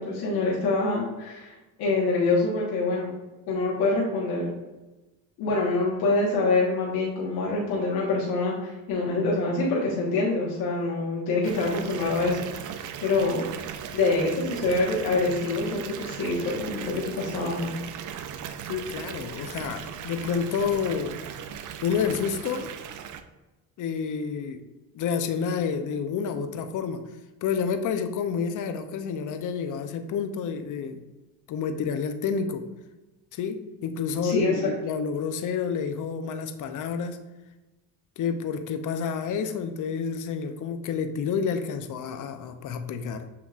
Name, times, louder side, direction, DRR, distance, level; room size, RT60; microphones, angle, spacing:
voice 1, 0.0-3.1 3.5-4.5 5.4-13.4 13.9-17.7 34.2-34.7, left 3 dB, 85° left, -5 dB, 1.2 m, -26 dB
Water tap faucet / Bathtub (filling or washing) / Fill (with liquid), 11.4-23.2, right 8 dB, 50° right, 0.5 m, -38 dB
voice 2, 18.7-21.2 21.8-22.7 23.8-24.6 24.9-27.0 27.4-31.0 31.5-32.6 33.3-37.2 38.2-43.2, left 6 dB, 50° left, 8 dB, 0.6 m, -29 dB
7.2 x 2.9 x 2.4 m, 1.1 s
cardioid pair, 90°, 38 cm